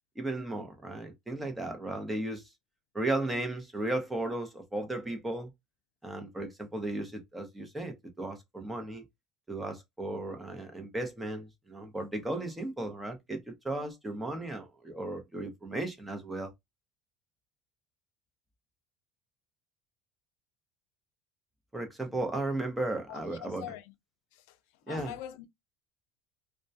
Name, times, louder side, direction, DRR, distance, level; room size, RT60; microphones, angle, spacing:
voice 1, 0.2-2.5 2.9-5.5 6.0-9.0 9.5-16.5 21.7-23.6 24.9-25.1, right 2 dB, 10° right, 0.7 m, -35 dB
voice 2, 23.1-23.9 24.3-24.6 24.8-25.5, left 12 dB, 85° left, 0.3 m, -43 dB
2.2 x 2.1 x 2.6 m
cardioid pair, 135°, 0 cm